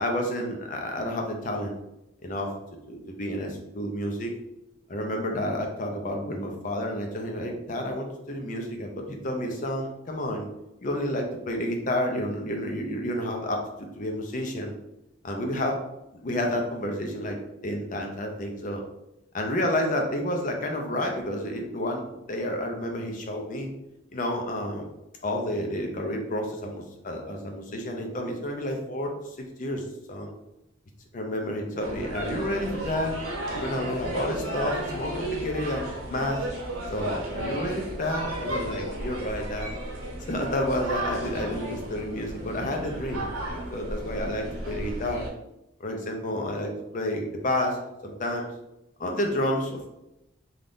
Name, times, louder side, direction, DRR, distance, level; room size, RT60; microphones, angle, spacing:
voice 1, 0.0-1.7 2.2-2.5 2.9-4.3 4.9-10.5 10.8-14.7 15.2-15.8 16.1-17.4 17.6-18.8 19.3-23.7 24.1-24.9 25.2-29.1 29.4-29.8 30.1-30.3 31.1-33.2 33.5-36.4 36.9-39.7 40.3-45.2 45.8-48.5 49.0-49.9, left 1 dB, 40° left, 2 dB, 0.5 m, -30 dB
sound 1, 31.8-45.3, right 1 dB, 90° right, 0.8 m, -34 dB
2.6 x 2.4 x 3.5 m, 0.88 s
head